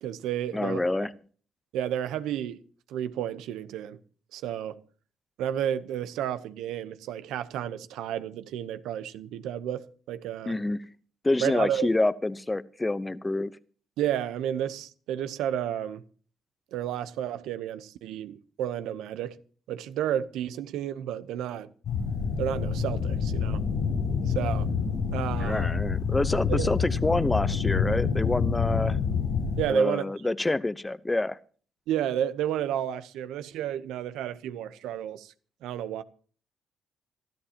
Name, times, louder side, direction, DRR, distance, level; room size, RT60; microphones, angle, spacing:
voice 1, 0.0-0.8 1.7-2.6 2.9-4.0 4.3-4.8 5.4-10.6 11.4-11.9 14.0-16.0 16.7-19.4 19.7-21.7 22.4-23.6 24.3-24.7 25.1-25.7 26.5-26.7 29.6-30.1 31.9-35.3 35.6-36.0, right 10 dB, 90° right, 0.8 m, -31 dB
voice 2, 0.5-1.1 10.5-10.8 11.2-13.6 25.4-29.0 29.7-31.4, left 2 dB, 15° left, 0.8 m, -27 dB
sound 1, 21.8-29.6, left 6 dB, 70° left, 6.6 m, -27 dB
25.0 x 13.0 x 2.9 m
cardioid pair, 90°, 0 cm